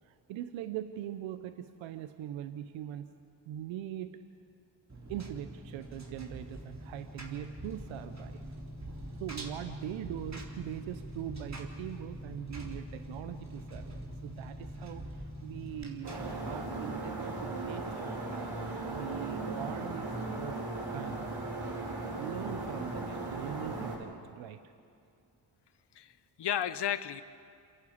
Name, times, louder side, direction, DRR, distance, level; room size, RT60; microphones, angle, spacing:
voice 1, 0.0-3.1 3.5-4.2 5.1-8.4 9.1-18.5 18.9-20.6 20.9-21.4 22.2-24.7, right 11 dB, 90° right, 10 dB, 0.8 m, -42 dB
Engine, 4.9-16.5, equal, 35° right, 3.7 m, -44 dB
sound 1, 16.0-24.0, right 2 dB, 60° right, 6.7 m, -37 dB
voice 2, 25.9-27.2, left 10 dB, 65° left, 14 dB, 1.1 m, -33 dB
27.5 x 11.0 x 8.5 m, 2.4 s
supercardioid pair, 40°, 45 cm